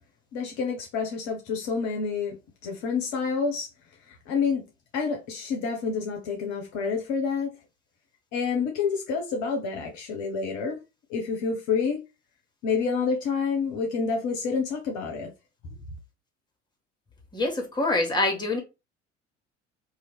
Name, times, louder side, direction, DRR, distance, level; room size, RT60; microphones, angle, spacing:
voice 1, 0.3-2.4 2.6-3.7 4.1-4.6 4.9-7.6 8.3-10.8 11.1-12.0 12.6-15.3, left 5 dB, 50° left, 0.7 m, -28 dB
voice 2, 17.3-18.6, left 2 dB, 10° left, 1.2 m, -25 dB
2.8 x 2.3 x 3.4 m
figure-of-eight pair, 60°, 36 cm